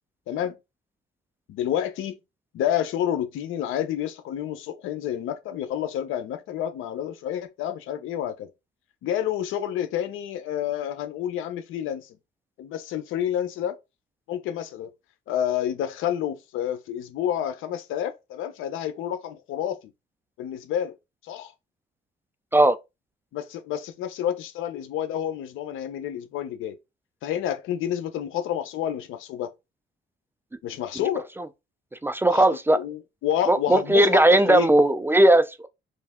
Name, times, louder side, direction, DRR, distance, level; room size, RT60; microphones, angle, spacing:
voice 1, 1.5-2.2 2.5-8.5 9.0-12.2 12.6-13.8 14.3-14.9 15.3-19.8 20.4-20.9 21.2-21.5 23.3-26.8 27.2-29.5 30.6-31.3 32.3-34.7, left 10 dB, 90° left, 0.6 m, -29 dB
voice 2, 32.0-32.8 33.5-35.7, right 1 dB, 10° right, 0.3 m, -18 dB
3.3 x 2.6 x 3.5 m
cardioid pair, 90°, 20 cm